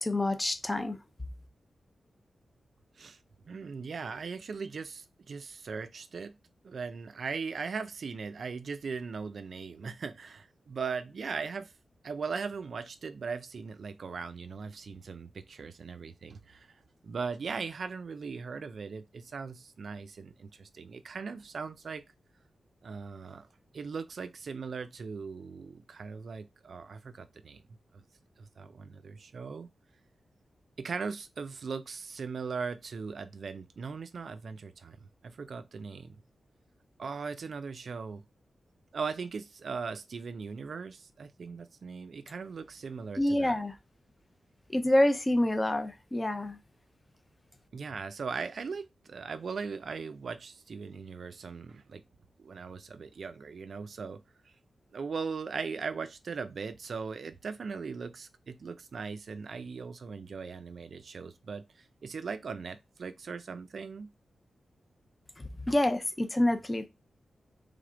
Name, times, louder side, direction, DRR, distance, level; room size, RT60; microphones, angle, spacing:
voice 1, 0.0-1.0 43.2-43.7 44.7-46.6 65.6-66.8, left 1 dB, 15° left, 0.6 m, -27 dB
voice 2, 3.5-6.3 6.6-11.7 12.0-22.0 22.8-23.5 23.7-28.0 28.4-29.7 30.8-36.2 37.0-38.2 38.9-43.6 47.7-52.0 52.4-54.5 54.9-64.1, right 5 dB, 55° right, 0.5 m, -39 dB
3.5 x 3.4 x 3.7 m
wide cardioid pair, 175°, 0 cm